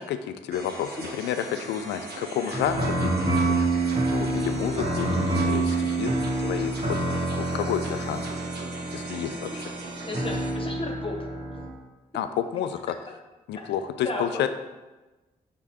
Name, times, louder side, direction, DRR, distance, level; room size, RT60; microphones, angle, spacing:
voice 1, 0.0-3.7 4.1-6.1 6.4-8.4 8.9-9.7 12.1-13.1 13.5-14.5, left 9 dB, 75° left, 9 dB, 0.4 m, -30 dB
sound 1, 0.5-10.5, right 2 dB, 65° right, 1.1 m, -40 dB
sound 2, 2.5-11.7, right 2 dB, 30° right, 1.3 m, -27 dB
voice 2, 10.1-11.1 12.9-13.0 14.0-14.5, left 2 dB, 30° left, 1 dB, 1.4 m, -34 dB
5.0 x 4.6 x 4.3 m, 1.2 s
hypercardioid pair, 40°, 18 cm